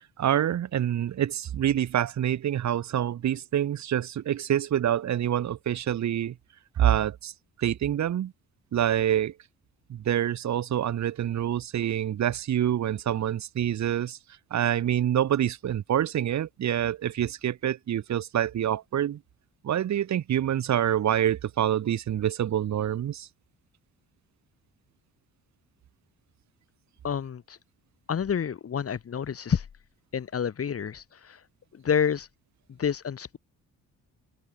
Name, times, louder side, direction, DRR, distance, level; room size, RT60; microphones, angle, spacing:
voice 1, 0.2-6.3 6.8-7.3 7.6-8.3 8.7-9.3 9.9-14.2 14.5-19.2 19.6-23.3, right 10 dB, 65° right, 3.4 m, -26 dB
voice 2, 27.0-27.6 28.1-29.7 30.1-31.4 31.7-32.3 32.7-33.4, left 7 dB, 50° left, 5.6 m, -29 dB
open air
cardioid pair, 90°, 30 cm